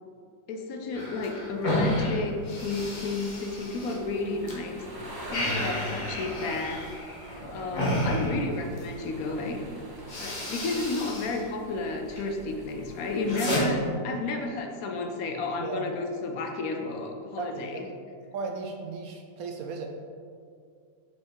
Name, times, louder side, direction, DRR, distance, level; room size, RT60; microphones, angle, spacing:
voice 1, 0.5-6.9 7.5-9.7 10.2-17.9, left 3 dB, 65° left, 3 dB, 0.9 m, -32 dB
sound 1, 0.9-4.5 4.9-8.9 9.6-9.7 10.0-11.4 11.7-12.3 12.7-13.6, left 1 dB, 30° left, 1.1 m, -32 dB
sound 2, 2.5-13.6, right 1 dB, 30° right, 0.4 m, -45 dB
voice 2, 17.4-17.8 18.3-19.9, right 4 dB, 75° right, 3 dB, 0.8 m, -35 dB
5.7 x 4.8 x 4.4 m, 2.3 s
omnidirectional pair, 2.0 m